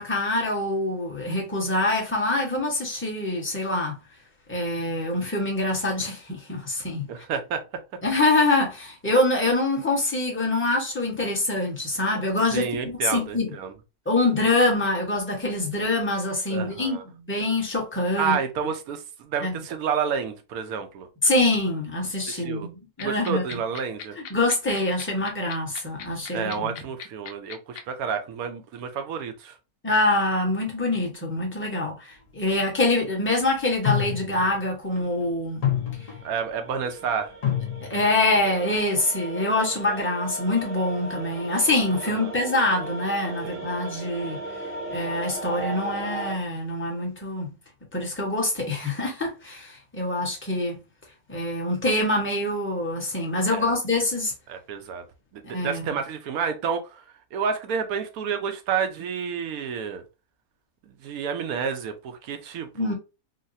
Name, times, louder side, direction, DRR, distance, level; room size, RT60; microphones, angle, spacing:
voice 1, 0.0-3.9 4.5-7.1 8.0-13.5 14.1-18.4 19.4-19.6 21.2-23.6 24.2-26.7 29.8-35.6 37.9-44.4 44.9-47.5 47.9-50.8 51.3-54.3 55.4-55.9 62.7-62.9, left 2 dB, 10° left, 0.8 m, -25 dB
voice 2, 7.1-7.6 12.5-13.7 16.5-17.0 18.2-21.1 22.3-22.7 23.0-24.2 26.3-29.6 36.2-37.3 42.1-42.3 43.4-43.7 53.5-53.7 54.5-55.0 55.3-57.0 57.3-60.0 60.9-62.9, right 6 dB, 75° right, 1.1 m, -30 dB
sound 1, 23.0-27.8, left 8 dB, 70° left, 1.0 m, -37 dB
sound 2, 32.5-32.6 33.8-34.6 35.0-35.2 35.6-36.5 37.4-38.2 38.6-38.8, left 10 dB, 35° left, 0.6 m, -27 dB
sound 3, 36.0-46.4, right 2 dB, 50° right, 0.8 m, -37 dB
3.9 x 2.1 x 2.6 m
omnidirectional pair, 1.6 m